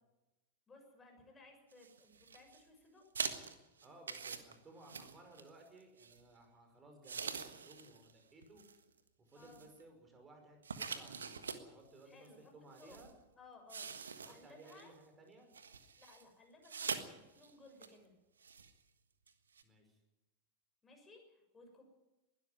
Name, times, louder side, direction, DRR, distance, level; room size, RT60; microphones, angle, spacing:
voice 1, 0.7-3.0 9.3-9.6 12.1-12.5 12.8-13.0 13.3-13.9 14.2-14.9 16.0-18.1 20.8-21.8, left 3 dB, 15° left, 2 dB, 6.6 m, -60 dB
sound 1, 1.7-2.6 3.1-5.7 6.0-6.2 7.0-8.1 8.4-8.7 9.4-9.8 10.6-11.6 12.2-12.3 12.7-13.1 13.7-14.9 15.5-16.2 16.6-17.1 17.4-17.5 17.8-17.9 18.4-18.7 19.3-19.4 19.6-19.7, right 5 dB, 70° right, 1.5 m, -44 dB
voice 2, 3.8-8.6 9.2-13.1 14.2-15.5 19.6-20.0, right 2 dB, 20° right, 4 dB, 5.6 m, -59 dB
21.0 x 12.5 x 9.8 m, 1.0 s
figure-of-eight pair, 90°, 0 cm